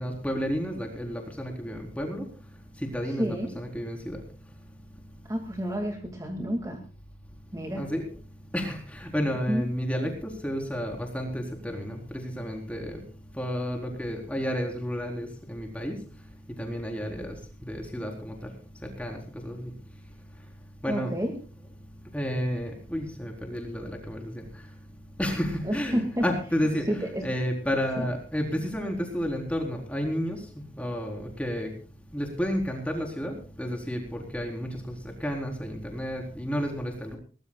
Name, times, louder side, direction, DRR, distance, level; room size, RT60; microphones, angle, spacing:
voice 1, 0.0-2.3 2.7-4.2 7.8-8.1 8.5-13.1 13.3-16.0 16.5-18.5 18.8-19.7 20.8-21.2 22.1-24.7 25.2-31.7 32.1-37.2, equal, 5° left, 2 dB, 4.2 m, -31 dB
voice 2, 3.0-3.5 5.3-6.8 7.5-7.8 9.5-9.6 20.9-21.3 25.6-26.2 26.9-27.2 28.0-28.1, equal, 20° right, 2 dB, 2.3 m, -30 dB
22.5 x 19.5 x 2.4 m, 0.38 s
head